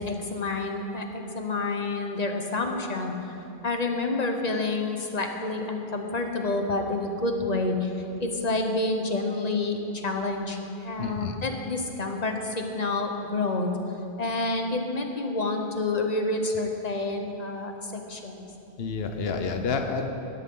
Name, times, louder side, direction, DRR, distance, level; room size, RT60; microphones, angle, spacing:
voice 1, 0.0-3.4 3.6-7.9 8.2-13.7 14.2-18.5, left 2 dB, 40° left, 3 dB, 1.2 m, -28 dB
voice 2, 11.0-11.3 18.8-20.1, left 5 dB, 65° left, 5 dB, 1.1 m, -29 dB
17.0 x 12.5 x 3.8 m, 2.8 s
omnidirectional pair, 1.1 m